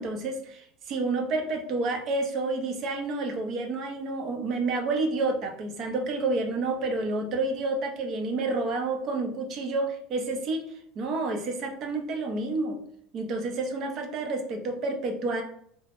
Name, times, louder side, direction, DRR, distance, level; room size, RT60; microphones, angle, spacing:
voice 1, 0.0-12.8 13.1-15.4, right 3 dB, 45° right, 4 dB, 0.6 m, -29 dB
2.4 x 2.0 x 3.4 m, 0.67 s
supercardioid pair, 125°, 0 cm